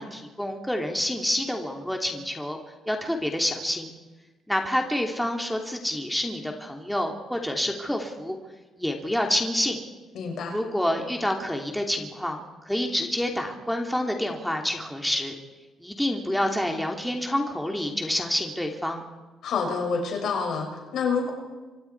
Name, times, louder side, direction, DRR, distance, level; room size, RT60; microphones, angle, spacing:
voice 1, 0.0-2.6 2.9-3.9 4.5-8.4 8.8-9.8 10.5-15.3 15.8-19.0, left 1 dB, 5° left, 2 dB, 2.8 m, -28 dB
voice 2, 10.1-10.5 19.4-21.3, left 5 dB, 75° left, 1 dB, 6.4 m, -27 dB
28.0 x 25.0 x 4.7 m, 1.2 s
cardioid pair, 90°, 0 cm